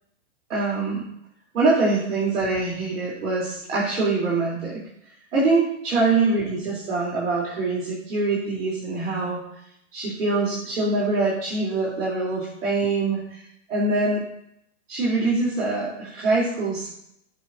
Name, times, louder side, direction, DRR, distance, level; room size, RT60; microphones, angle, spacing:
voice 1, 0.5-1.0 1.5-4.8 5.3-9.4 9.9-13.4 13.7-14.2 14.9-16.9, right 3 dB, 90° right, -6 dB, 3.8 m, -24 dB
17.5 x 6.5 x 2.8 m, 0.74 s
hypercardioid pair, 165°, 36 cm